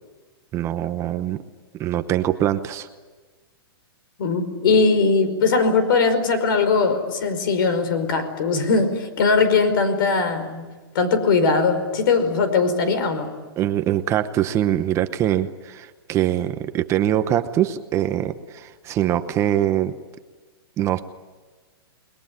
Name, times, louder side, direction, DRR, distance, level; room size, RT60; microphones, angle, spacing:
voice 1, 0.5-1.4 1.8-2.9 13.6-19.9 20.8-21.0, right 12 dB, 20° right, 9 dB, 0.9 m, -23 dB
voice 2, 4.2-10.7 10.9-13.3, left 4 dB, 60° left, 11 dB, 5.0 m, -20 dB
29.5 x 21.0 x 9.7 m, 1.3 s
hypercardioid pair, 155°, 13 cm